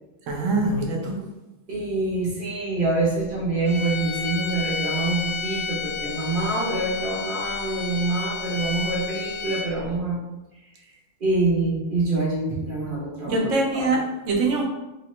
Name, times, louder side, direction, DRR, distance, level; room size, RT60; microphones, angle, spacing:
voice 1, 0.3-1.2 13.3-14.6, right 2 dB, 80° right, 0 dB, 1.0 m, -23 dB
voice 2, 1.7-10.2 11.2-13.9, right 3 dB, 50° right, -5 dB, 0.8 m, -26 dB
sound 1, 3.6-9.9, left 6 dB, 5° left, 0.5 m, -31 dB
3.0 x 2.1 x 2.9 m, 1.0 s
omnidirectional pair, 1.3 m